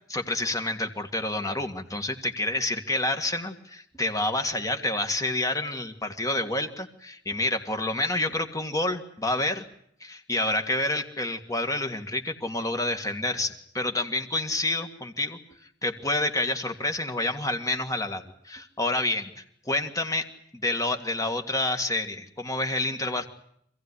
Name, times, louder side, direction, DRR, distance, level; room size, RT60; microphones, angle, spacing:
voice 1, 0.1-9.6 10.0-15.4 15.8-20.3 20.6-23.3, left 2 dB, 20° left, 6 dB, 1.9 m, -28 dB
26.5 x 16.5 x 9.8 m, 0.69 s
head